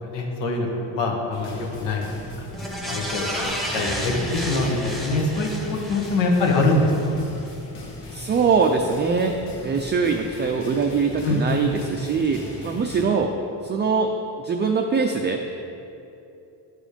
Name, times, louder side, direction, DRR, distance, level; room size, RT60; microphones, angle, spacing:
voice 1, 0.0-2.5 2.9-7.1 11.2-11.6, left 2 dB, 90° left, 0 dB, 1.6 m, -24 dB
sound 1, 1.3-13.0, left 1 dB, 75° left, 1.9 m, -39 dB
sound 2, 2.5-7.1 7.5-7.6, equal, ahead, 1.0 m, -32 dB
voice 2, 8.1-9.3 9.6-13.3 13.6-14.1 14.4-15.4, right 5 dB, 25° right, 3 dB, 0.4 m, -22 dB
10.0 x 5.1 x 5.1 m, 2.8 s
cardioid pair, 135°, 42 cm